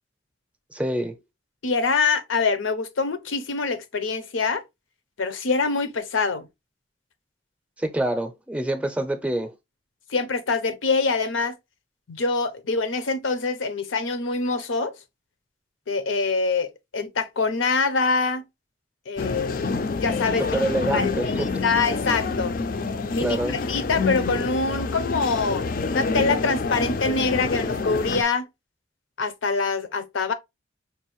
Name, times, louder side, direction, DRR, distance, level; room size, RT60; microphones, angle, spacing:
voice 1, 0.7-1.2 7.8-9.5 20.4-21.6 23.2-23.6, right 1 dB, 5° right, 0.5 m, -26 dB
voice 2, 1.6-4.6 5.2-6.5 10.1-11.5 12.1-14.9 15.9-18.4 19.1-20.6 20.9-21.1 21.6-22.6 23.1-23.4 23.7-28.5 29.2-30.3, left 4 dB, 85° left, 0.6 m, -25 dB
sound 1, 19.2-28.2, left 4 dB, 45° left, 0.4 m, -27 dB
5.3 x 2.5 x 3.0 m
head